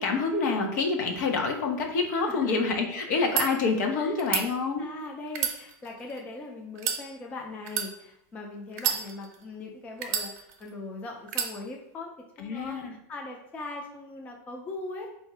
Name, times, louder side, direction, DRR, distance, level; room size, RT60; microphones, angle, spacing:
voice 1, 0.0-4.9 12.4-12.9, left 4 dB, 70° left, 3 dB, 0.9 m, -27 dB
voice 2, 2.3-2.6 4.0-4.1 4.8-12.1 12.4-15.1, left 2 dB, 15° left, 1 dB, 0.4 m, -40 dB
sound 1, 3.1-3.5 4.2-4.5 5.3-6.2 6.8-7.0 7.7-7.9 8.7-9.4 10.0-10.7 11.3-11.5, right 8 dB, 55° right, 0.7 m, -29 dB
4.1 x 2.7 x 4.6 m, 0.78 s
supercardioid pair, 175°, 10 cm